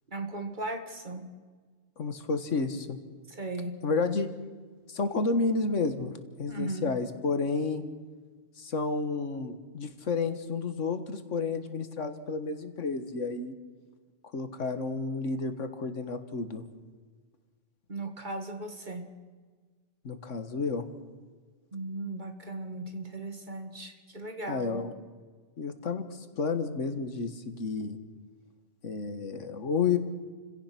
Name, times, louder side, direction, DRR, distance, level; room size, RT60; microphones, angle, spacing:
voice 1, 0.1-1.3 3.3-3.7 6.5-6.9 17.9-19.0 21.7-24.8, right 2 dB, 40° right, 6 dB, 2.1 m, -37 dB
voice 2, 2.0-3.0 3.8-4.3 4.9-6.1 6.4-7.8 8.6-13.5 14.3-16.6 20.0-20.9 24.5-24.9 25.6-26.0 26.4-28.0 28.8-30.0, left 4 dB, 90° left, 9 dB, 1.8 m, -31 dB
29.5 x 16.5 x 6.0 m, 1.5 s
omnidirectional pair, 1.2 m